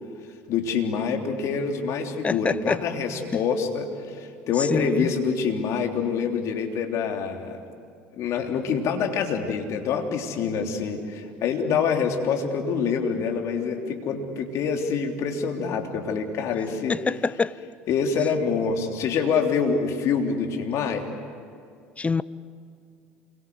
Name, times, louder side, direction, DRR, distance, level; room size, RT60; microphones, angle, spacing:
voice 1, 0.5-7.6 8.1-16.9 17.9-21.1, left 6 dB, 55° left, 3.4 m, -26 dB
voice 2, 2.2-2.8 4.6-5.1 16.9-17.6 22.0-22.2, left 4 dB, 20° left, 0.7 m, -25 dB
28.0 x 23.0 x 8.1 m
hypercardioid pair, 70°, 6 cm